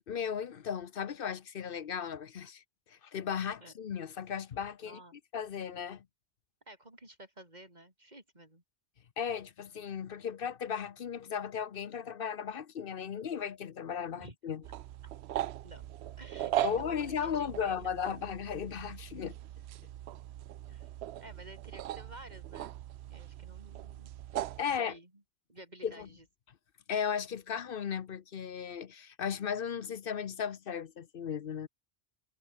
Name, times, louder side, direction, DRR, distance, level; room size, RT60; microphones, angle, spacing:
voice 1, 0.1-5.0 5.3-6.1 9.2-14.6 16.6-19.4 24.6-24.9 25.8-26.1 26.9-31.7, left 7 dB, 55° left, 0.9 m, -36 dB
voice 2, 4.8-5.2 6.7-8.6 14.2-14.4 15.6-15.8 16.2-18.1 20.7-20.9 21.2-22.8 23.0-25.1 25.5-26.2, right 1 dB, 40° right, 6.1 m, -52 dB
sound 1, 14.6-24.6, right 13 dB, 75° right, 0.8 m, -39 dB
omnidirectional pair, 1.1 m